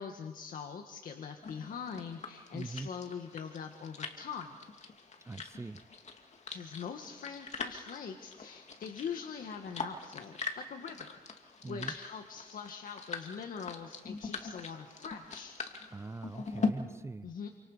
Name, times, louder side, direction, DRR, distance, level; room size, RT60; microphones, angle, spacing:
voice 1, 0.0-4.6 6.5-15.6 17.2-17.5, left 6 dB, 65° left, 4 dB, 1.9 m, -43 dB
sound 1, 1.4-16.7, left 4 dB, 50° left, 2.7 m, -42 dB
voice 2, 2.5-2.9 5.2-5.8 11.6-11.9 15.9-17.3, right 3 dB, 15° right, 13 dB, 0.6 m, -42 dB
29.0 x 26.0 x 5.2 m, 1.3 s
cardioid pair, 95°, 15 cm